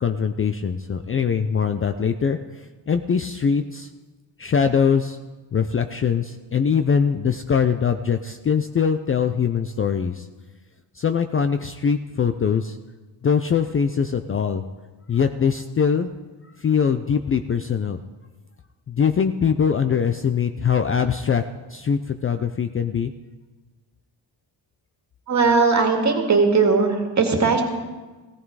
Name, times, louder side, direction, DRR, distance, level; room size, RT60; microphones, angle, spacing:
voice 1, 0.0-2.4 2.9-3.9 4.4-5.2 5.5-10.2 11.0-12.8 13.2-14.6 15.1-16.1 16.6-18.0 18.9-21.4 21.7-23.1, left 6 dB, 30° left, 8 dB, 0.4 m, -22 dB
voice 2, 25.3-27.6, right 4 dB, 40° right, 3 dB, 2.2 m, -18 dB
16.5 x 14.5 x 4.8 m, 1.3 s
wide cardioid pair, 150°, 43 cm